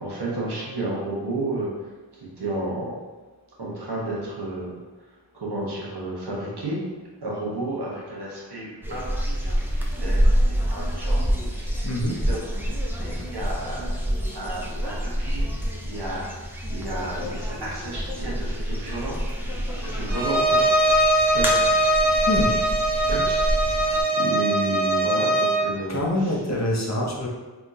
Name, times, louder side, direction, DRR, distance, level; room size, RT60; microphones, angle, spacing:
voice 1, 0.0-3.0 3.6-4.7 5.3-6.8 7.2-9.1 9.4-11.2 11.5-12.7 13.0-13.9 14.3-16.4 16.7-21.1 21.3-21.5 23.1-23.4 24.1-26.3, right 2 dB, 60° right, -5 dB, 1.0 m, -32 dB
sound 1, 8.8-24.0, equal, 5° right, 0.5 m, -27 dB
voice 2, 11.8-12.2 22.1-22.6 25.9-27.3, left 1 dB, 40° left, -3 dB, 0.7 m, -25 dB
Bowed string instrument, 20.1-25.7, right 1 dB, 25° right, 1.5 m, -21 dB
3.6 x 2.3 x 2.7 m, 1.2 s
cardioid pair, 45°, 44 cm